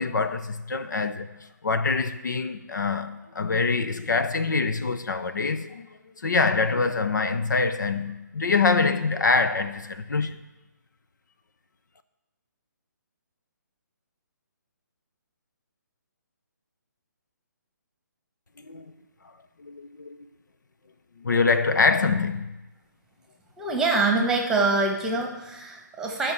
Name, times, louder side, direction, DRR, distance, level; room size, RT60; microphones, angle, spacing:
voice 1, 0.0-5.9 6.2-10.4 18.7-18.8 19.6-20.2 21.2-22.5, left 4 dB, 70° left, 0.8 m, -25 dB
voice 2, 23.6-26.3, right 3 dB, 5° right, 1.5 m, -24 dB
13.5 x 6.0 x 8.0 m
figure-of-eight pair, 145°, 10 cm